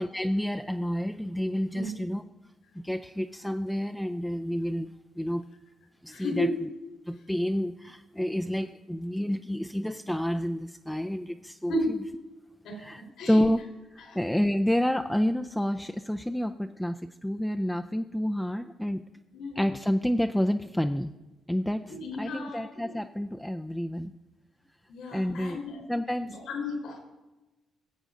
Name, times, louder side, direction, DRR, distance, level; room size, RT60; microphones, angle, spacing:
voice 1, 0.0-2.2 2.8-4.9 5.2-5.4 6.0-6.5 7.1-12.0 12.8-13.7 13.9-19.0 19.6-21.1 21.5-24.1 25.1-25.6 25.9-26.3, equal, 5° left, 7 dB, 0.4 m, -29 dB
voice 2, 6.1-6.6 11.7-11.9 12.6-12.8 13.2-13.4 14.0-14.2 19.3-19.5 21.9-22.9 24.9-25.8 26.3-27.0, left 1 dB, 80° left, 1 dB, 3.9 m, -33 dB
16.0 x 8.0 x 3.8 m, 1.1 s
cardioid pair, 90°, 0 cm